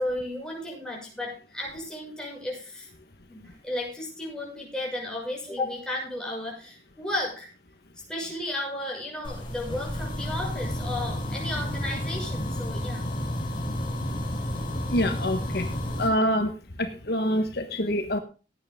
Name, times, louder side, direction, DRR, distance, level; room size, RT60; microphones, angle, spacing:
voice 1, 0.0-2.9 3.3-7.5 8.1-13.0, left 1 dB, 5° left, -2 dB, 6.4 m, -33 dB
sound 1, 9.2-16.1, left 1 dB, 25° left, 4.9 m, -31 dB
voice 2, 14.9-15.7 16.0-16.5 16.8-18.2, equal, 60° left, 6 dB, 1.4 m, -25 dB
17.0 x 9.4 x 3.7 m, 0.34 s
head